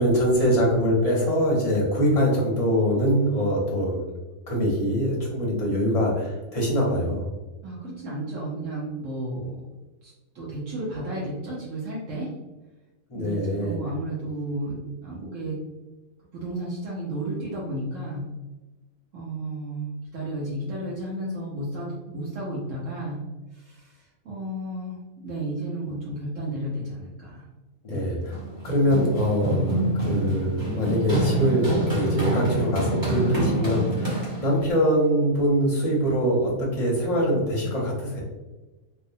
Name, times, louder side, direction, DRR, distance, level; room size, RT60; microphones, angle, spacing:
voice 1, 0.0-4.0 4.5-7.2 13.1-13.8 27.8-28.3 28.6-38.2, equal, 40° left, -3 dB, 0.5 m, -23 dB
voice 2, 7.6-9.6 10.0-12.3 13.1-15.6 16.3-18.3 19.1-23.2 23.5-25.0 25.2-27.5 27.9-28.1, right 1 dB, 70° right, -5 dB, 1.0 m, -33 dB
Run, 28.3-34.7, right 1 dB, 20° right, 0.7 m, -26 dB
2.6 x 2.1 x 2.6 m, 1.1 s
omnidirectional pair, 1.4 m